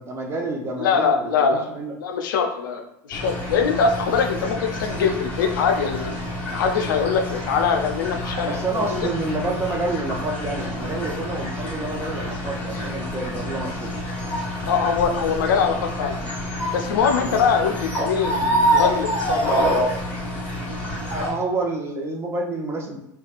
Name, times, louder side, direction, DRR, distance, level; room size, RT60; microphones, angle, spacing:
voice 1, 0.0-1.5 1.7-1.9 8.3-13.9 17.2-17.4 21.1-23.0, right 2 dB, 25° right, 1 dB, 0.7 m, -28 dB
voice 2, 0.8-1.7 2.0-2.8 3.1-6.1 6.5-9.1 14.7-16.2 16.7-19.7, left 6 dB, 85° left, 4 dB, 0.4 m, -22 dB
sound 1, 3.1-21.3, equal, 15° left, 1.1 m, -27 dB
2.8 x 2.3 x 2.4 m, 0.84 s
hypercardioid pair, 95°, 10 cm